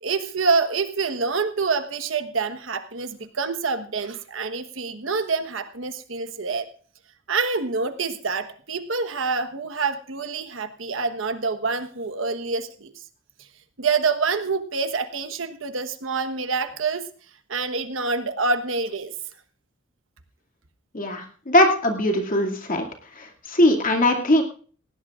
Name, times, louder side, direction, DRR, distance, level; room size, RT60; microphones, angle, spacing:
voice 1, 0.0-6.7 7.3-12.9 13.8-17.0 17.5-19.1, right 4 dB, 75° right, 10 dB, 1.2 m, -26 dB
voice 2, 20.9-22.9 23.2-24.4, left 1 dB, 45° left, 2 dB, 2.4 m, -20 dB
19.5 x 16.5 x 2.5 m, 0.43 s
head